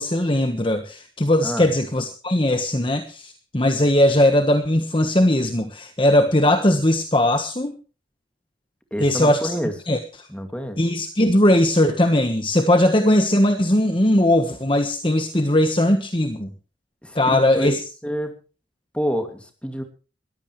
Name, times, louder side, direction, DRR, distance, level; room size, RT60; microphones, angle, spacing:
voice 1, 0.0-7.8 9.0-9.5 9.9-10.3 10.8-16.5 17.1-17.8, left 1 dB, 25° left, 7 dB, 1.3 m, -19 dB
voice 2, 8.9-9.7 10.3-10.8 17.0-17.8 18.0-18.4 18.9-19.8, equal, 5° left, 6 dB, 2.4 m, -28 dB
21.0 x 15.0 x 3.2 m, 0.35 s
head